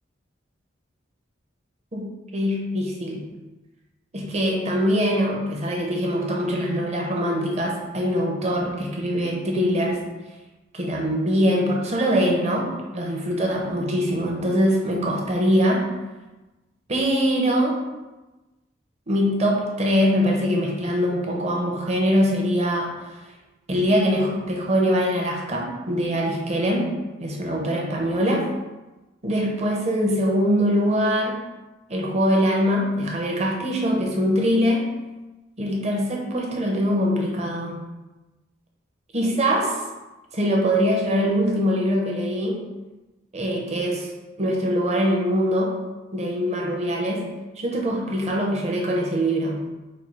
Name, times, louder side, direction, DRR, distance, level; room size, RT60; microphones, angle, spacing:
voice 1, 1.9-3.2 4.1-10.0 10.7-15.9 16.9-17.8 19.1-23.2 23.7-26.9 27.2-28.5 29.2-31.4 31.9-34.9 35.6-37.8 39.1-39.8 40.3-42.6 43.3-44.1 44.4-45.7 46.1-47.3 47.6-49.6, equal, 35° right, -1 dB, 0.8 m, -23 dB
4.4 x 2.3 x 4.7 m, 1.1 s
head